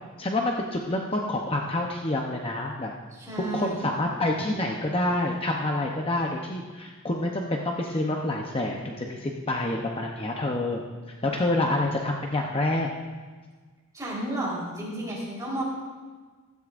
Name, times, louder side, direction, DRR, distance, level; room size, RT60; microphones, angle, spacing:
voice 1, 0.2-2.9 3.5-10.8 11.2-12.9, left 2 dB, 25° left, 1 dB, 0.7 m, -27 dB
voice 2, 3.1-3.8 13.9-15.6, right 1 dB, 15° right, -6 dB, 3.9 m, -32 dB
15.5 x 13.0 x 2.5 m, 1.4 s
head